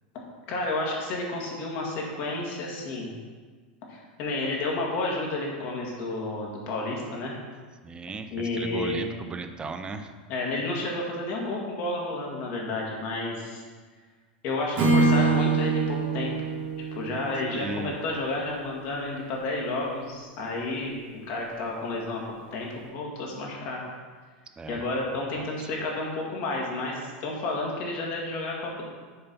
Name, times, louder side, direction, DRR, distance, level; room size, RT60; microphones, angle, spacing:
voice 1, 0.5-3.1 3.9-7.3 8.3-9.1 10.3-13.6 14.4-16.3 16.9-20.9 21.3-23.8 24.7-28.8, left 2 dB, 55° left, -2 dB, 2.0 m, -31 dB
voice 2, 7.8-10.1 17.5-17.9 24.6-24.8 25.4-25.5, right 3 dB, 20° right, 8 dB, 0.5 m, -36 dB
Acoustic guitar / Strum, 14.8-18.7, right 3 dB, 50° right, 1.7 m, -25 dB
6.7 x 4.0 x 5.4 m, 1.5 s
hypercardioid pair, 110°, 5 cm